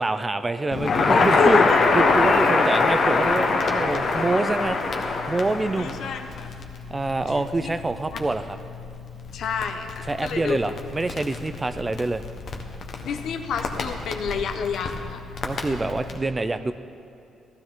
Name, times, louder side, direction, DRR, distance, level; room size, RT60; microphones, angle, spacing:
voice 1, 0.0-1.7 1.9-6.0 6.9-8.6 10.1-12.2 15.4-16.7, right 2 dB, 20° right, 11 dB, 0.4 m, -26 dB
Crackle, 0.7-16.2, left 3 dB, 55° left, 1.2 m, -25 dB
voice 2, 1.3-1.8 5.8-6.5 7.4-7.7 8.1-8.2 9.3-10.6 13.0-15.2, left 5 dB, 70° left, 6 dB, 0.9 m, -28 dB
15.5 x 12.5 x 3.7 m, 2.6 s
cardioid pair, 90°, 0 cm